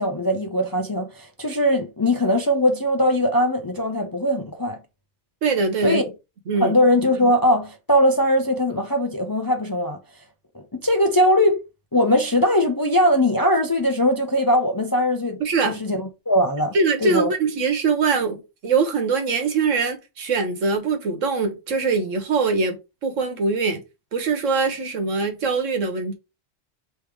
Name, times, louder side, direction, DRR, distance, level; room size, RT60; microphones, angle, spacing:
voice 1, 0.0-4.8 5.8-6.1 6.6-10.0 10.5-11.6 11.9-15.4 15.7-16.7 17.0-17.3, left 1 dB, 30° left, 0.4 m, -20 dB
voice 2, 5.4-6.0 6.5-6.7 15.4-15.8 16.7-23.8 24.1-26.2, right 4 dB, 85° right, 1.4 m, -22 dB
3.4 x 3.0 x 4.8 m
omnidirectional pair, 1.3 m